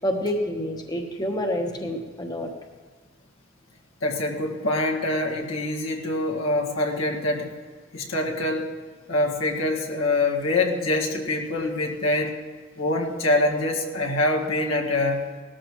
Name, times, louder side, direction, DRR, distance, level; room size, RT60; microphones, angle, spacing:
voice 1, 0.0-2.5, equal, 20° left, 2 dB, 1.1 m, -28 dB
voice 2, 4.0-7.5 7.9-8.7 9.1-12.4 12.8-15.2, left 2 dB, 85° left, -1 dB, 1.9 m, -25 dB
18.5 x 13.0 x 3.1 m, 1.6 s
head